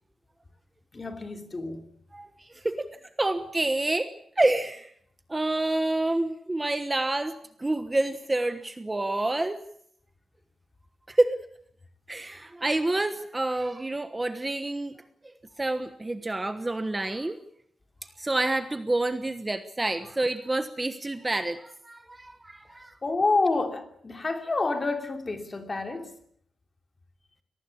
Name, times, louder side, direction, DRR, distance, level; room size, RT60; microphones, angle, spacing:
voice 1, 0.9-1.8 23.0-26.1, left 3 dB, 30° left, 3.0 m, -28 dB
voice 2, 2.1-2.9 3.2-4.1 4.4-4.9 5.3-9.6 11.1-11.4 12.1-14.9 15.2-17.4 18.2-22.9, right 2 dB, 15° right, 1.2 m, -28 dB
24.0 x 19.0 x 8.6 m
wide cardioid pair, 145°, 0 cm